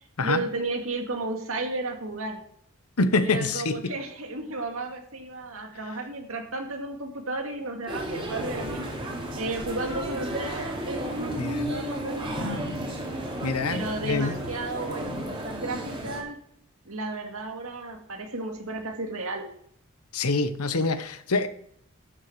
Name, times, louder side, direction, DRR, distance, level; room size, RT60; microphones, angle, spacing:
voice 1, 0.2-2.4 3.2-8.9 9.4-12.7 13.7-16.4 16.9-19.5, right 2 dB, 70° right, 4 dB, 2.2 m, -33 dB
voice 2, 3.0-3.9 11.4-11.8 13.4-14.4 20.1-21.5, left 3 dB, 85° left, 12 dB, 1.0 m, -26 dB
sound 1, 7.9-16.2, right 1 dB, 25° right, 2.7 m, -33 dB
12.0 x 6.5 x 6.3 m, 0.66 s
head